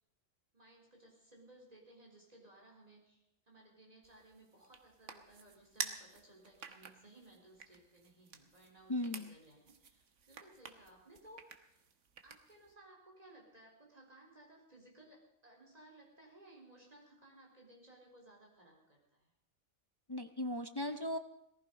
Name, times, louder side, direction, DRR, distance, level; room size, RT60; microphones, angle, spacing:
voice 1, 0.5-11.8 12.2-19.3, right 1 dB, 30° right, -1 dB, 4.0 m, -60 dB
sound 1, 4.0-12.7, right 6 dB, 85° right, 1.5 m, -50 dB
voice 2, 8.9-9.3 20.1-21.2, left 1 dB, 30° left, 8 dB, 0.5 m, -37 dB
18.5 x 14.5 x 5.2 m, 0.83 s
omnidirectional pair, 1.2 m